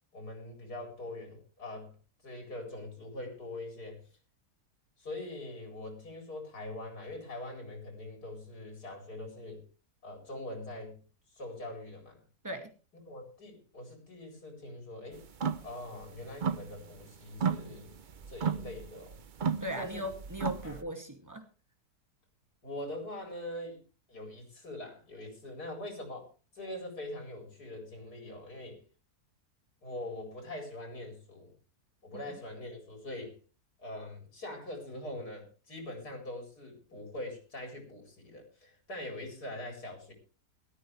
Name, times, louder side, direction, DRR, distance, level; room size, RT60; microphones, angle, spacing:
voice 1, 0.1-1.9 2.2-4.0 5.0-9.6 10.0-11.0 11.3-12.2 13.0-15.3 15.6-17.9 18.3-19.2 19.8-20.0 20.6-20.8 22.6-23.8 24.1-26.3 26.5-28.8 29.8-31.5 32.0-33.4 33.8-40.1, left 1 dB, 75° left, 2 dB, 4.7 m, -43 dB
sound 1, 15.3-15.7 16.0-17.0 17.3-20.8, right 6 dB, 50° right, 0.6 m, -34 dB
voice 2, 19.6-21.4 32.1-32.2, equal, 10° right, 5 dB, 2.2 m, -38 dB
17.5 x 13.5 x 3.3 m, 0.33 s
omnidirectional pair, 1.7 m